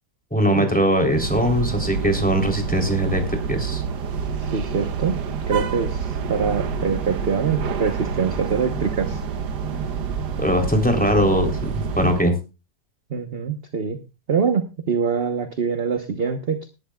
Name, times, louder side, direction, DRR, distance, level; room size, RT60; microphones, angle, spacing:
voice 1, 0.3-3.8 10.4-12.3, equal, 5° left, 4 dB, 3.3 m, -21 dB
sound 1, 1.0-12.2, right 6 dB, 75° right, 1.6 m, -28 dB
voice 2, 4.4-5.2 5.5-9.2 13.1-14.0 14.3-16.7, right 6 dB, 40° right, 8 dB, 1.1 m, -24 dB
19.5 x 11.5 x 2.3 m, 0.30 s
omnidirectional pair, 1.8 m